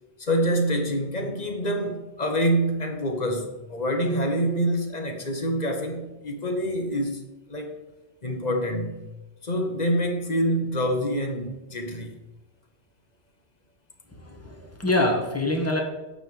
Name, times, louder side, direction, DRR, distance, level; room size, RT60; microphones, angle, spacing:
voice 1, 0.2-7.2 7.5-7.7 8.2-9.1 9.4-12.1, equal, 35° left, 2 dB, 1.2 m, -26 dB
voice 2, 14.1-15.8, left 2 dB, 10° left, 0 dB, 1.4 m, -25 dB
8.8 x 3.7 x 6.8 m, 1.1 s
omnidirectional pair, 1.2 m